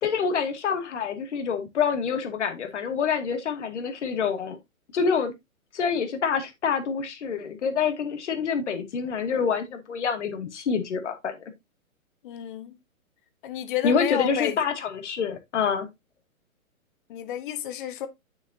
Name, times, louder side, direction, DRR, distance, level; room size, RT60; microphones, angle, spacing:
voice 1, 0.0-4.6 4.9-5.3 5.7-11.3 13.8-15.9, left 6 dB, 55° left, 2.6 m, -27 dB
voice 2, 12.2-12.7 13.4-14.6 17.1-18.1, left 11 dB, 35° left, 1.6 m, -31 dB
9.2 x 7.4 x 2.8 m
figure-of-eight pair, 130°, 43 cm